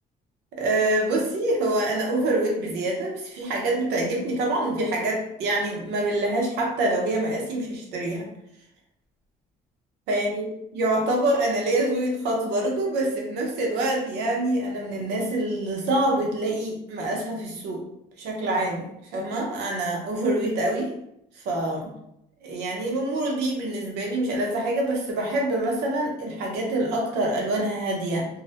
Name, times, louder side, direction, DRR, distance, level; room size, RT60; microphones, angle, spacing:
voice 1, 0.5-8.3 10.1-17.8 18.2-20.9 21.4-21.9 22.4-28.3, right 1 dB, 80° right, 0 dB, 0.7 m, -26 dB
2.2 x 2.0 x 2.8 m, 0.79 s
cardioid pair, 110°, 17 cm